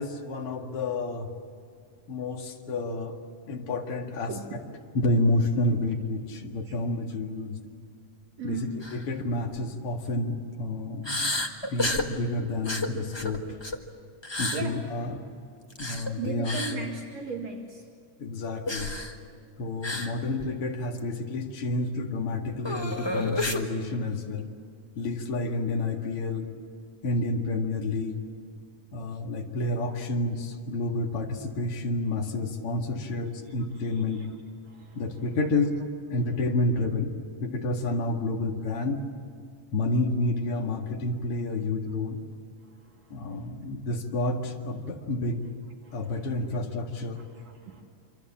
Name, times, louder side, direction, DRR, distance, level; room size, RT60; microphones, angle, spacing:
voice 1, 0.0-1.3 2.1-3.2 3.5-4.6 4.9-7.6 8.4-8.6 8.9-11.3 11.7-13.6 14.4-15.2 15.8-16.8 18.2-19.0 19.6-24.5 25.0-26.5 27.0-28.2 28.9-34.3 34.9-35.7 36.1-39.0 39.7-42.2 43.1-45.5 45.9-47.3, left 2 dB, 50° left, 2 dB, 2.7 m, -29 dB
voice 2, 4.3-4.6 6.7-6.8 8.4-8.8 14.5-14.8 16.2-17.9 33.2-34.3 34.7-35.2 42.7-43.6 45.8-46.6 47.1-47.8, right 3 dB, 60° right, 1 dB, 3.1 m, -38 dB
sound 1, 8.8-9.0 9.4-9.6 11.0-12.1 12.6-13.8 14.2-14.6 15.7-16.1 16.4-16.8 18.7-19.2 19.8-20.1 20.4-20.5 21.0-21.1 22.6-23.6, left 2 dB, 30° left, 0.5 m, -30 dB
26.5 x 25.5 x 7.4 m, 2.3 s
omnidirectional pair, 3.4 m